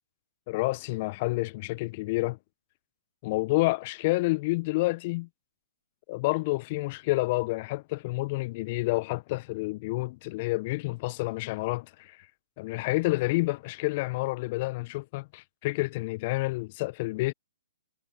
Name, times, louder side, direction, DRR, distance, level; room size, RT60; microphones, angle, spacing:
voice 1, 0.5-2.4 3.2-5.3 6.1-12.3 12.6-17.3, left 22 dB, 40° left, 0.5 m, -29 dB
figure-of-eight pair, 125°, 0 cm